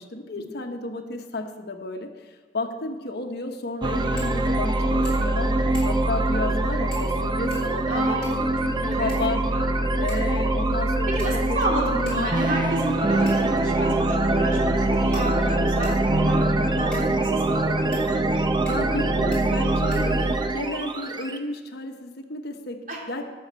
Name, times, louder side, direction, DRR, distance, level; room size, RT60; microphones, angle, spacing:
voice 1, 0.0-5.5 5.8-8.2 8.9-9.4 10.0-11.6 16.5-16.9 18.7-22.8 23.1-23.3, left 2 dB, 60° left, 5 dB, 1.1 m, -32 dB
sound 1, 3.8-21.4, right 2 dB, 25° right, 0.7 m, -23 dB
sound 2, 4.2-4.4 4.7-4.8 5.0-5.4 5.7-6.1 6.9-7.2 7.5-8.5 9.1-9.7 10.1-10.4 11.2-11.6 12.1-12.2 13.3-13.6 14.4-14.5 15.1-16.1 16.9-17.1 17.9-18.1 18.7-19.0 19.3-19.4 19.9-20.5, left 1 dB, 5° left, 4.0 m, -44 dB
voice 2, 7.9-9.2 9.5-9.7 11.1-17.9 22.9-23.0, right 1 dB, 45° right, -2 dB, 2.8 m, -30 dB
12.0 x 6.5 x 7.6 m, 1.5 s
head